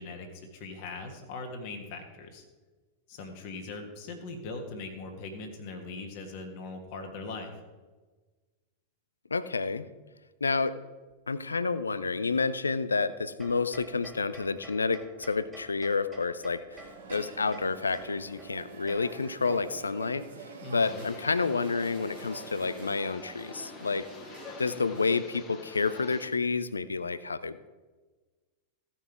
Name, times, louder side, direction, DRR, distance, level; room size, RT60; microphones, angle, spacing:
voice 1, 0.0-2.4 3.1-7.6 20.6-21.0, left 3 dB, 45° left, 3 dB, 1.6 m, -40 dB
voice 2, 9.3-9.9 10.4-10.8 11.3-20.3 20.7-24.1 24.6-27.7, left 4 dB, 75° left, 15 dB, 0.5 m, -29 dB
sound 1, 13.4-20.0, right 1 dB, 20° right, 2.2 m, -51 dB
sound 2, 16.7-25.2, right 4 dB, 65° right, 2.0 m, -46 dB
sound 3, 20.8-26.3, left 4 dB, 25° left, 1.4 m, -47 dB
15.5 x 5.7 x 4.6 m, 1.3 s
figure-of-eight pair, 90°, 0 cm